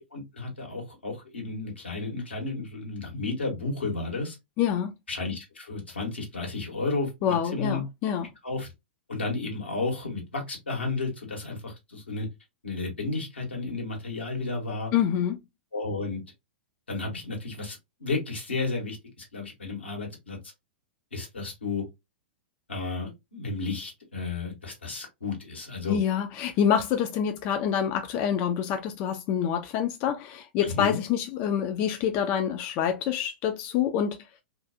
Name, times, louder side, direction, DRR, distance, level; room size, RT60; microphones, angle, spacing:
voice 1, 0.1-4.4 5.1-7.8 8.4-8.7 9.1-12.3 12.6-14.9 15.7-16.2 16.9-20.4 21.1-21.8 22.7-26.0 30.6-31.0, left 3 dB, 85° left, 1.2 m, -32 dB
voice 2, 4.6-4.9 7.2-8.3 14.9-15.4 25.9-34.2, left 9 dB, 40° left, 0.3 m, -26 dB
2.5 x 2.3 x 2.5 m
figure-of-eight pair, 105°, 6 cm